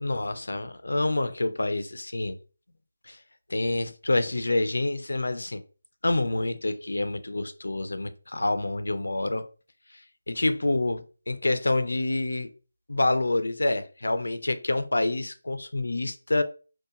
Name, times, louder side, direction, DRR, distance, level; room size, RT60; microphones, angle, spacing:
voice 1, 0.0-2.4 3.1-3.2 3.5-5.6 6.0-9.5 10.3-12.5 12.9-16.4, left 2 dB, 85° left, 0.4 m, -27 dB
2.8 x 2.1 x 2.4 m
figure-of-eight pair, 170°, 0 cm